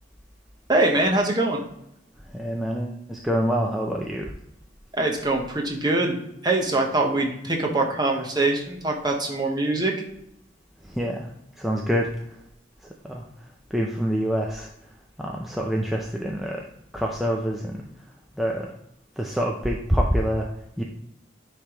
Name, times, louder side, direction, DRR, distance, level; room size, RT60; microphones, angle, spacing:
voice 1, 0.7-1.6 4.9-6.2 6.4-10.0, right 2 dB, 20° right, 1 dB, 0.9 m, -23 dB
voice 2, 2.3-4.3 10.8-12.4 13.0-13.3 13.7-14.9 15.2-16.6 16.9-17.8 18.4-18.7 19.2-20.5 20.8-20.9, equal, ahead, -1 dB, 0.4 m, -26 dB
9.9 x 3.3 x 2.9 m, 0.80 s
head